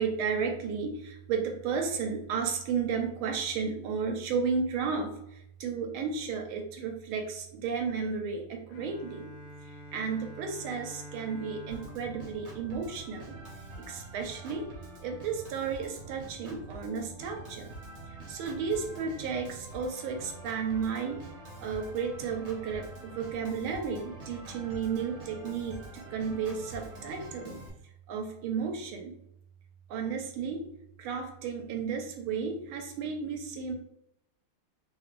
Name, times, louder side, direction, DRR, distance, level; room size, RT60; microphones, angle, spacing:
voice 1, 0.0-9.3 9.9-13.4 13.9-14.7 15.0-17.7 18.3-21.2 21.6-27.6 28.1-29.1 29.9-30.6 31.0-33.7, right 5 dB, 85° right, 4 dB, 1.5 m, -33 dB
Bowed string instrument, 8.7-13.6, equal, 75° left, 1.1 m, -48 dB
Organ, 11.7-27.7, right 1 dB, 50° right, 0.8 m, -46 dB
3.4 x 2.5 x 3.1 m, 0.77 s
omnidirectional pair, 2.3 m